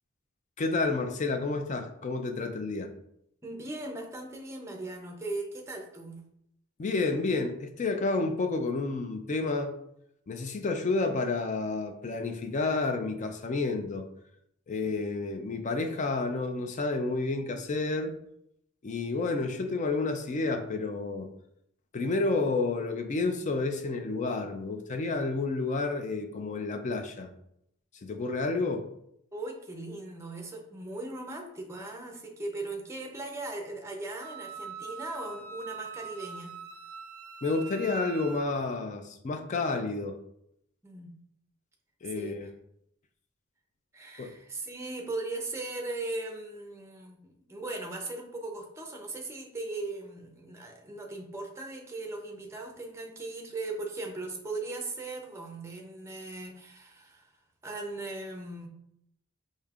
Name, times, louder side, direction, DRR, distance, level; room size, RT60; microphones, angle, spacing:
voice 1, 0.6-2.9 6.8-9.8 10.3-14.1 14.7-18.1 18.8-21.3 21.9-27.3 28.0-28.9 37.4-40.2 42.0-42.5 44.2-44.3, left 3 dB, 35° left, 6 dB, 0.4 m, -30 dB
voice 2, 3.4-6.2 29.3-36.6 40.8-41.1 42.1-42.4 43.9-57.3 57.6-58.7, right 2 dB, 15° right, 1 dB, 0.5 m, -38 dB
Wind instrument woodwind instrument, 34.2-38.5, right 6 dB, 80° right, 0.4 m, -43 dB
5.0 x 2.7 x 2.4 m, 0.76 s
head